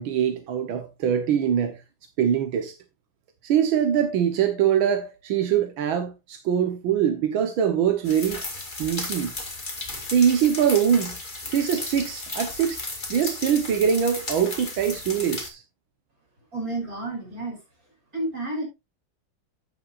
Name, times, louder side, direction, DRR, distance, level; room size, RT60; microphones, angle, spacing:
voice 1, 0.0-1.8 2.2-2.8 3.4-8.4 8.8-9.3 10.1-11.2 11.5-12.8 13.1-15.6, right 8 dB, 85° right, 1.9 m, -23 dB
sound 1, 8.0-15.5, left 2 dB, 25° left, 2.4 m, -34 dB
voice 2, 16.5-17.6 18.1-18.7, right 2 dB, 45° right, 6.1 m, -30 dB
12.0 x 9.4 x 2.5 m
omnidirectional pair, 2.1 m